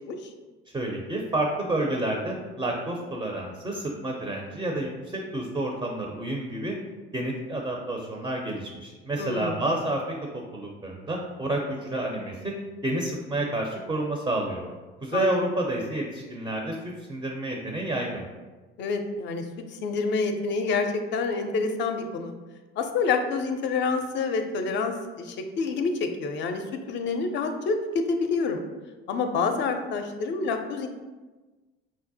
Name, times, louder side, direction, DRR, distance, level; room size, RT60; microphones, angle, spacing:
voice 1, 0.7-6.7 7.1-10.0 10.3-12.5 12.8-14.6 15.0-18.2, right 1 dB, 15° right, 1 dB, 0.4 m, -29 dB
voice 2, 9.2-9.7 15.1-15.4 18.8-22.3 22.8-28.6 29.1-30.9, left 4 dB, 40° left, 6 dB, 0.4 m, -28 dB
4.6 x 2.1 x 2.7 m, 1.2 s
figure-of-eight pair, 60°, 29 cm